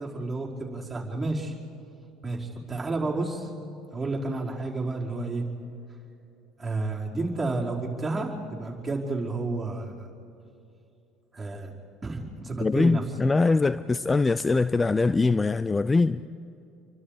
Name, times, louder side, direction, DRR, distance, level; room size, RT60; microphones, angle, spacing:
voice 1, 0.0-1.5 2.2-3.5 3.9-5.4 6.6-10.1 11.3-11.7 12.0-13.0, right 2 dB, 15° right, -3 dB, 5.0 m, -31 dB
voice 2, 12.6-16.2, left 3 dB, 20° left, 15 dB, 0.5 m, -22 dB
29.5 x 24.5 x 5.1 m, 2.7 s
hypercardioid pair, 65°, 0 cm